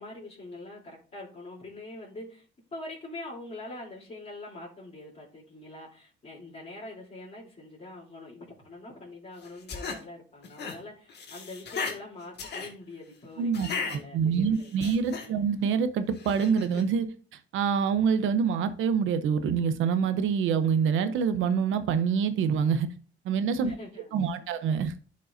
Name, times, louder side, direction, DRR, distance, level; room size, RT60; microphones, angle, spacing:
voice 1, 0.0-15.5 23.6-24.5, left 2 dB, 35° left, 3.3 m, -44 dB
sound 1, 9.4-10.0 10.4-10.8 11.1-12.0 12.4-12.7 13.5-14.0 14.6-15.3 16.2-16.8, left 5 dB, 60° left, 1.8 m, -36 dB
voice 2, 13.4-17.1 17.5-22.9 23.2-23.7 24.1-24.9, right 6 dB, 85° right, 0.8 m, -26 dB
11.0 x 5.3 x 2.6 m
cardioid pair, 90°, 20 cm